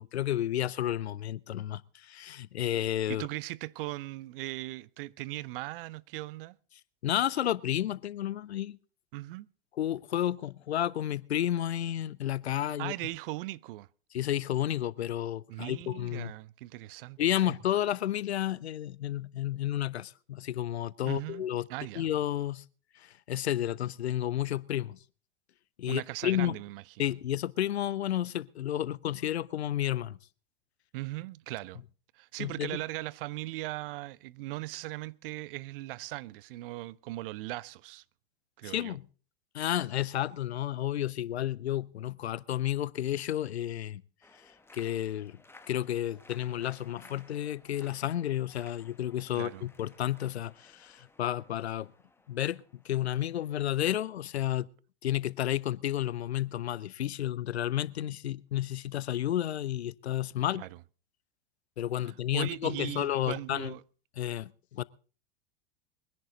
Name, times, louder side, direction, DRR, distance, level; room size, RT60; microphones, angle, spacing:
voice 1, 0.0-3.3 7.0-8.8 9.8-12.9 14.1-16.3 17.2-21.7 22.0-22.6 23.0-25.0 25.8-26.6 27.0-30.2 32.4-32.8 38.6-39.0 39.5-44.0 44.7-45.4 45.7-51.9 52.3-54.7 55.0-60.6 61.8-63.7 64.2-64.8, left 12 dB, 85° left, 0.6 m, -31 dB
voice 2, 3.1-6.6 9.1-9.5 12.6-13.9 15.5-17.4 21.0-22.1 25.9-27.1 30.9-31.8 32.1-38.0 38.6-39.0 49.3-49.7 60.6-60.8 62.0-63.8, right 18 dB, 60° right, 0.6 m, -39 dB
sound 1, 44.2-53.9, left 2 dB, 5° left, 1.4 m, -58 dB
22.5 x 10.5 x 3.9 m
hypercardioid pair, 90°, 31 cm